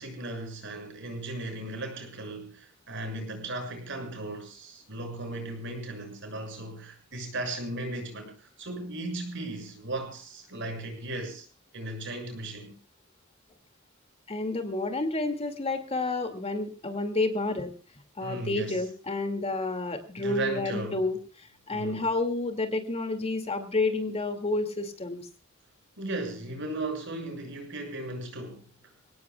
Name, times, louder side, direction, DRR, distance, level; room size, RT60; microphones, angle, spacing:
voice 1, 0.0-11.5 11.7-12.7 18.2-18.8 20.2-21.0 21.7-22.1 26.0-28.7, right 2 dB, 60° right, 6.8 m, -36 dB
voice 2, 14.3-17.7 18.2-25.2, left 2 dB, 30° left, 2.4 m, -30 dB
27.0 x 18.0 x 2.4 m
head